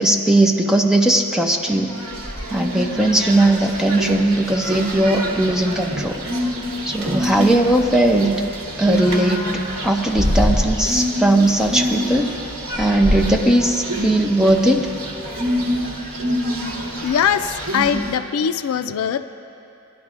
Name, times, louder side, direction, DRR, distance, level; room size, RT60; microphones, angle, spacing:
voice 1, 0.0-1.9 2.5-6.2 6.9-8.4 8.8-12.3 12.7-14.9, right 1 dB, 5° right, 1 dB, 0.5 m, -18 dB
sound 1, 1.7-18.2, equal, 80° right, 1.4 m, -25 dB
voice 2, 17.0-19.3, left 8 dB, 75° left, 11 dB, 0.3 m, -21 dB
19.0 x 11.0 x 2.4 m, 2.8 s
head